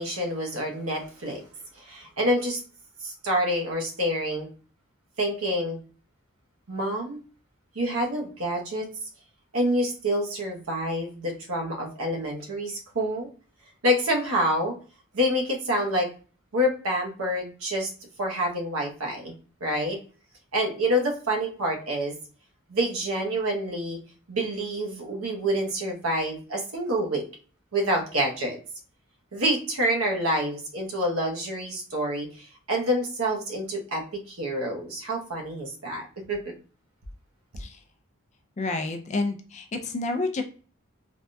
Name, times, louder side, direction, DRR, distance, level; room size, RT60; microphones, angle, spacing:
voice 1, 0.0-1.4 1.8-2.6 3.0-4.5 5.2-5.8 6.7-7.2 7.7-8.9 9.5-13.3 13.8-14.7 15.1-16.1 16.5-17.9 18.2-19.3 19.6-20.0 20.5-22.2 22.7-24.0 24.3-27.2 27.7-28.6 29.3-36.5, equal, 80° right, 1 dB, 0.8 m, -27 dB
voice 2, 38.6-40.4, left 3 dB, 30° left, 6 dB, 0.3 m, -29 dB
3.4 x 2.2 x 2.5 m, 0.39 s
head